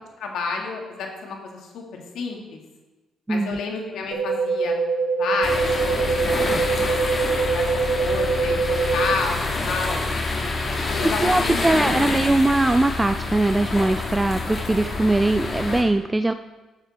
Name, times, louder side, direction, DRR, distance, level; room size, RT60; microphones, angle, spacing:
voice 1, 0.2-2.6 3.3-4.7 5.2-7.0 7.3-7.7 8.0-10.1 10.9-12.3, left 4 dB, 80° left, 1 dB, 2.0 m, -30 dB
voice 2, 3.3-3.6 11.2-16.3, right 2 dB, 15° right, 9 dB, 0.3 m, -21 dB
sound 1, 4.1-9.1, right 4 dB, 85° right, 3.9 m, -23 dB
sound 2, 5.4-15.8, left 3 dB, 40° left, 2.2 m, -27 dB
Bowed string instrument, 8.2-13.1, right 1 dB, 10° left, 3.4 m, -41 dB
12.5 x 7.1 x 4.4 m, 1.2 s
cardioid pair, 90°, 0 cm